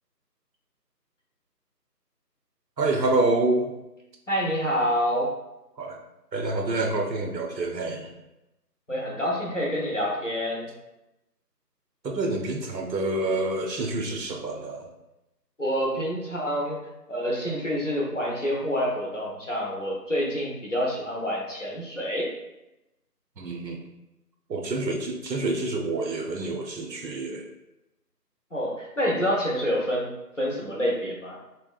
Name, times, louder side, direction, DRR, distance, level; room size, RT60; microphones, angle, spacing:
voice 1, 2.8-3.7 5.8-6.0 6.3-8.1 12.0-14.9 23.4-23.8 24.5-27.5, right 2 dB, 90° right, 2 dB, 0.7 m, -27 dB
voice 2, 4.3-5.3 8.9-10.7 15.6-16.8 17.1-22.3 28.5-30.1 30.4-31.4, equal, 50° left, -3 dB, 0.5 m, -27 dB
2.7 x 2.1 x 2.3 m, 0.94 s
figure-of-eight pair, 170°, 49 cm